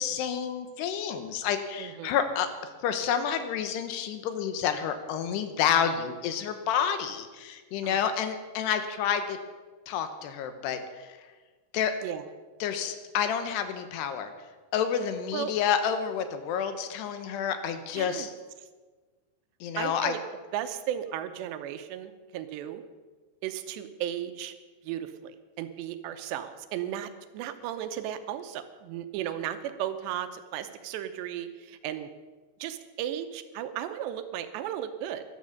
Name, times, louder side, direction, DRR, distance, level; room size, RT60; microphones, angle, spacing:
voice 1, 0.0-2.5 2.8-9.4 9.9-10.8 11.7-11.9 12.6-14.3 14.7-18.3 19.6-20.1, left 8 dB, 80° left, 9 dB, 3.0 m, -29 dB
voice 2, 1.8-2.2 7.8-8.1 12.0-12.3 15.3-15.5 18.0-18.3 19.8-20.2 20.5-22.8 23.4-24.5 24.8-32.1 32.6-35.2, right 11 dB, 90° right, 10 dB, 3.0 m, -35 dB
12.5 x 12.5 x 7.0 m, 1.4 s
omnidirectional pair, 5.0 m